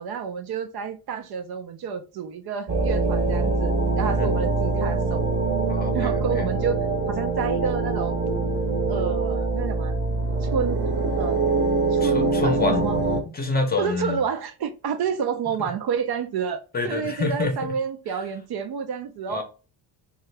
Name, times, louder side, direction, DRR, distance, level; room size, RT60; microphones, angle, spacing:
voice 1, 0.0-5.3 5.9-8.2 8.9-10.0 10.4-11.4 11.9-13.0 13.8-19.4, right 7 dB, 60° right, 0.5 m, -29 dB
sound 1, 2.7-13.2, right 3 dB, 25° right, 0.8 m, -24 dB
voice 2, 5.7-6.5 12.0-12.8 13.3-14.2 16.7-17.5 19.3-19.4, left 3 dB, 20° left, 0.7 m, -27 dB
2.7 x 2.4 x 3.2 m
cardioid pair, 115°, 44 cm